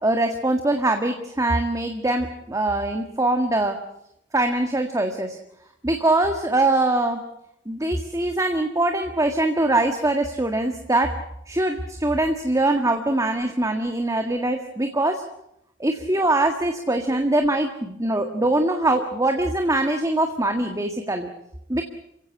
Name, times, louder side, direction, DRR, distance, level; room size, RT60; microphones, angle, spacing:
voice 1, 0.0-3.8 4.3-5.4 5.8-7.2 7.7-11.1 11.5-15.2 15.8-21.3 21.7-21.8, right 2 dB, 15° right, 5 dB, 1.7 m, -22 dB
28.5 x 16.0 x 8.5 m, 0.79 s
head